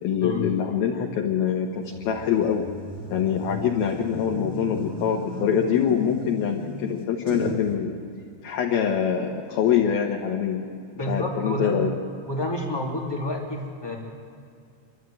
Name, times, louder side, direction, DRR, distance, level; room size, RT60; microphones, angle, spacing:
voice 1, 0.0-2.7 3.1-7.9 8.4-10.7 11.0-11.9, left 8 dB, 65° left, 1 dB, 2.7 m, -24 dB
sound 1, 1.9-7.7, right 1 dB, 35° right, 1.9 m, -36 dB
voice 2, 11.0-11.9 12.2-13.9, left 1 dB, 10° left, -2 dB, 1.2 m, -29 dB
28.0 x 12.0 x 9.2 m, 2.4 s
omnidirectional pair, 5.5 m